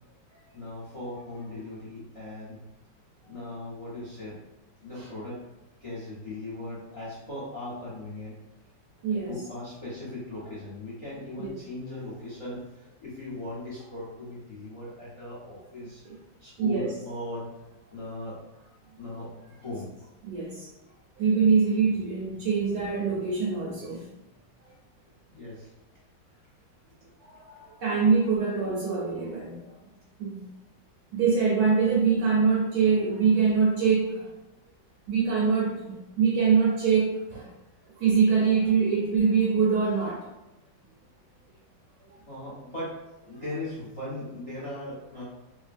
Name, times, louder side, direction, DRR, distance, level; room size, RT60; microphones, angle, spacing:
voice 1, 0.5-2.6 3.2-4.4 4.8-5.4 5.8-8.4 9.1-16.0 16.4-17.5 17.9-18.4 19.0-19.9 25.3-25.7 42.3-42.9 43.2-45.2, left 1 dB, 40° left, -10 dB, 0.5 m, -38 dB
voice 2, 9.0-9.4 11.4-11.5 16.0-16.1 16.6-16.9 20.2-20.7 21.2-24.0 27.2-29.8 30.2-30.4 31.1-34.3 35.1-37.5 38.0-40.3 43.3-43.4, right 5 dB, 70° right, -3 dB, 1.1 m, -24 dB
3.3 x 2.2 x 2.5 m, 0.99 s
omnidirectional pair, 2.1 m